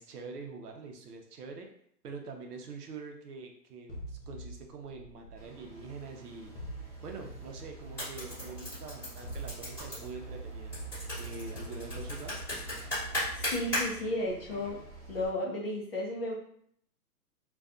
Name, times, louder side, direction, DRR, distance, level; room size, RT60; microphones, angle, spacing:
voice 1, 0.0-1.7 2.0-6.6 7.0-10.8 11.2-12.4, right 4 dB, 70° right, 3 dB, 0.7 m, -45 dB
sound 1, 3.9-6.0 6.5-8.4 9.0-14.1, right 1 dB, 80° left, 0.9 m, -46 dB
sound 2, 5.3-15.3, right 3 dB, 30° right, 0.7 m, -50 dB
sound 3, 7.8-13.8, equal, 5° left, 0.9 m, -37 dB
voice 2, 13.3-14.8 15.1-16.3, left 1 dB, 40° left, -3 dB, 0.5 m, -33 dB
2.5 x 2.3 x 2.3 m, 0.67 s
hypercardioid pair, 150°, 49 cm